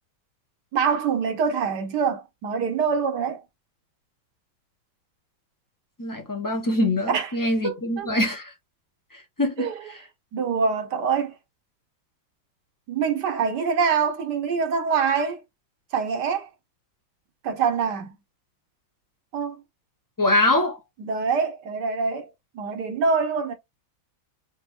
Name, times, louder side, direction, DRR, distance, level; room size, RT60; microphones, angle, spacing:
voice 1, 0.7-3.4 7.1-7.3 7.6-8.1 9.6-9.8 10.3-11.3 12.9-15.4 15.9-16.5 17.4-18.2 19.3-19.6 21.0-22.3 22.5-23.5, right 5 dB, 60° right, 1.4 m, -25 dB
voice 2, 6.0-8.5 9.1-9.7 20.2-20.8, left 1 dB, 15° left, 0.7 m, -24 dB
4.6 x 3.1 x 3.6 m
omnidirectional pair, 2.2 m